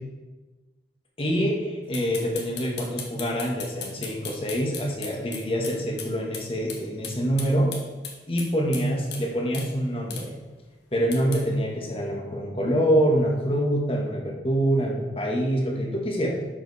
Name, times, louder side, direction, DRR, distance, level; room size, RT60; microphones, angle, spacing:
voice 1, 1.2-7.7 8.3-10.3 10.9-16.4, equal, 30° left, -1 dB, 1.6 m, -25 dB
sound 1, 1.9-6.1 6.3-6.4 6.7-6.8 7.0-8.9 9.1-9.2 9.5-9.7 10.1-10.3 11.1-11.4, left 6 dB, 85° left, 1.5 m, -36 dB
11.5 x 5.2 x 4.2 m, 1.2 s
head